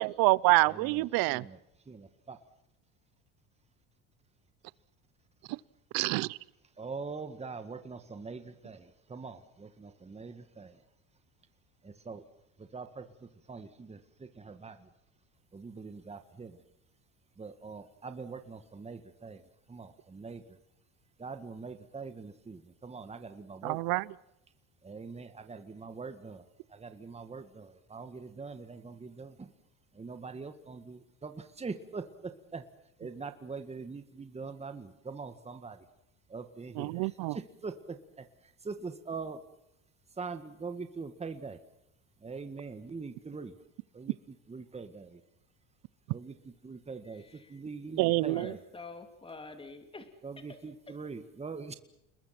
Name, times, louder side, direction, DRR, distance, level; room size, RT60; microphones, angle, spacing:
voice 1, 0.0-1.4 5.9-6.4 23.6-24.1 36.7-37.4 48.0-48.5, right 22 dB, 65° right, 22 dB, 0.8 m, -27 dB
voice 2, 0.7-1.6 1.9-2.4 6.8-10.8 11.8-12.2 12.6-13.0 13.5-14.9 15.5-16.6 17.4-19.4 19.7-20.4 21.2-24.0 24.8-26.4 26.7-29.5 30.0-32.6 33.0-35.8 36.3-38.2 38.6-39.4 40.2-41.6 42.2-43.5 43.9-45.2 46.1-46.3 46.6-47.2 47.5-48.6 50.2-51.7, right 4 dB, 15° right, 9 dB, 1.9 m, -43 dB
voice 3, 47.0-50.1 50.4-51.0, left 3 dB, 15° left, 7 dB, 3.0 m, -48 dB
30.0 x 21.0 x 6.0 m, 0.84 s
supercardioid pair, 115°, 38 cm